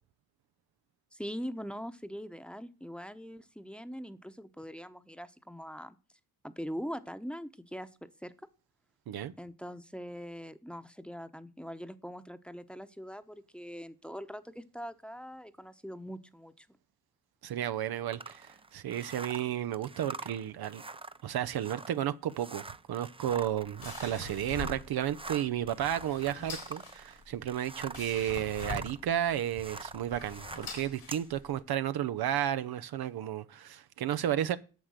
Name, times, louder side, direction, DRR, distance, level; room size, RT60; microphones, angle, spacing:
voice 1, 1.1-6.0 6.4-8.3 9.4-16.7, equal, 5° left, 0.9 m, -42 dB
voice 2, 17.4-20.8 21.2-34.6, right 11 dB, 75° right, 0.6 m, -33 dB
sound 1, 18.1-28.1 28.4-31.3, right 3 dB, 15° right, 0.5 m, -45 dB
sound 2, 23.3-31.6, left 3 dB, 90° left, 3.8 m, -44 dB
9.5 x 6.7 x 6.5 m
supercardioid pair, 50°, 37 cm